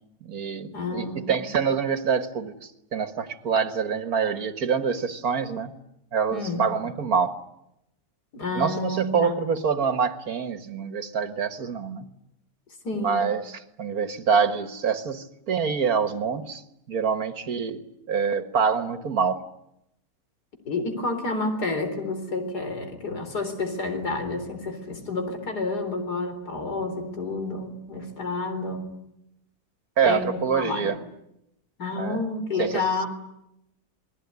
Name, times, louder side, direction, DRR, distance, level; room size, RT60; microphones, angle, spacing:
voice 1, 0.2-2.5 2.9-5.7 6.1-7.4 8.6-12.1 12.9-16.6 16.9-19.4 30.0-31.0 32.0-32.2 32.6-32.8, right 6 dB, 65° right, 10 dB, 2.0 m, -26 dB
voice 2, 0.7-1.6 6.3-6.6 8.3-9.4 12.8-13.3 20.6-28.9 30.0-31.0 31.8-33.1, left 3 dB, 80° left, 7 dB, 4.5 m, -30 dB
28.5 x 21.0 x 9.7 m, 0.83 s
omnidirectional pair, 1.7 m